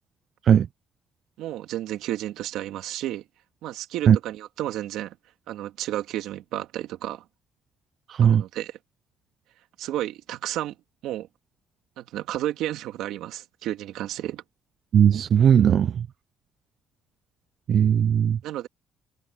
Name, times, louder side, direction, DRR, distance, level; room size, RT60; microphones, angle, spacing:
voice 1, 1.4-3.2 3.6-5.2 5.5-7.2 8.2-8.8 9.8-10.7 11.0-11.3 12.0-14.4 18.4-18.7, right 13 dB, 80° right, 2.8 m, -32 dB
voice 2, 8.1-8.4 14.9-16.0 17.7-18.4, right 8 dB, 50° right, 0.5 m, -18 dB
cardioid pair, 125°, 0 cm